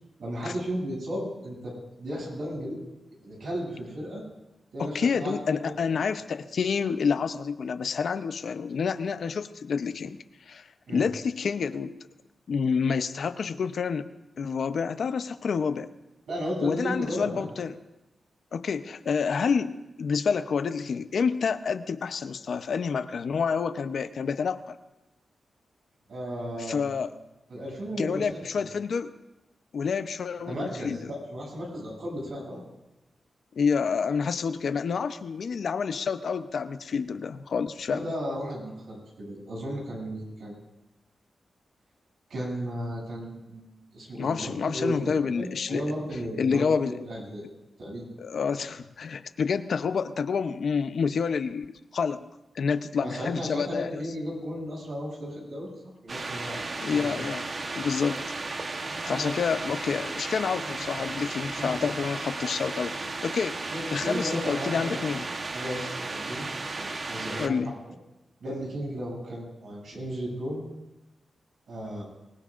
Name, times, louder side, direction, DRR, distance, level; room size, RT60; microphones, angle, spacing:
voice 1, 0.2-2.8 3.2-4.2 4.7-5.3 5.6-5.7 10.9-11.1 16.3-17.5 26.1-26.9 27.5-28.4 30.5-32.6 37.9-40.6 42.3-43.6 43.9-47.4 47.8-48.1 53.0-55.7 56.0-57.1 58.8-59.4 60.6-61.1 61.6-61.9 63.7-65.2 65.5-66.5 66.7-67.6 68.4-70.7 71.7-72.0, equal, 70° right, -2 dB, 7.7 m, -35 dB
voice 2, 4.8-10.2 10.5-11.9 12.5-14.1 14.4-15.9 16.6-17.8 18.5-24.8 26.6-27.1 28.0-29.1 29.7-31.0 33.6-38.0 44.1-45.8 46.4-47.0 48.2-51.7 51.9-52.3 52.5-54.0 56.8-57.5 57.7-58.2 59.0-63.6 63.9-65.3 67.4-67.7, left 6 dB, 70° left, 10 dB, 0.7 m, -28 dB
sound 1, 56.1-67.5, right 3 dB, 45° right, 1.1 m, -34 dB
24.5 x 20.5 x 2.6 m, 1.0 s
wide cardioid pair, 105°, 0 cm